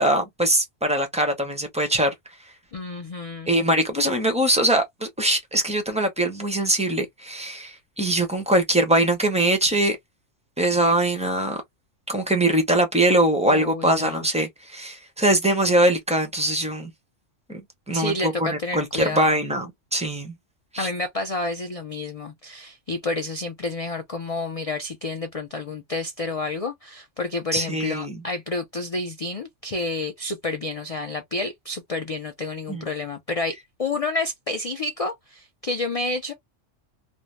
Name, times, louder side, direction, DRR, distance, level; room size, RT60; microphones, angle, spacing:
voice 1, 0.0-2.1 3.5-10.0 10.6-11.6 12.1-16.9 17.9-20.3 20.7-20.9 27.5-28.2 32.7-32.8, right 1 dB, 10° right, 0.4 m, -22 dB
voice 2, 2.7-3.5 13.5-14.3 17.9-19.4 20.8-36.3, left 2 dB, 65° left, 0.3 m, -29 dB
2.6 x 2.1 x 3.1 m
omnidirectional pair, 1.3 m